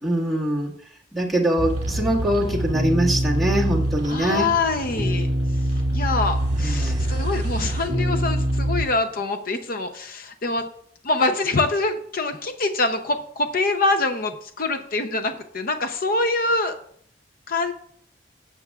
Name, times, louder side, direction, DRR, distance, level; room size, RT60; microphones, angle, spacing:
voice 1, 0.0-0.7 1.1-4.5 6.6-7.1, right 1 dB, ahead, -5 dB, 1.9 m, -23 dB
sound 1, 1.6-8.9, right 1 dB, 45° right, 2.3 m, -24 dB
voice 2, 4.1-5.3 5.9-10.7 11.0-16.7 17.5-17.7, left 3 dB, 55° left, 7 dB, 0.7 m, -24 dB
17.0 x 6.9 x 2.4 m, 0.62 s
head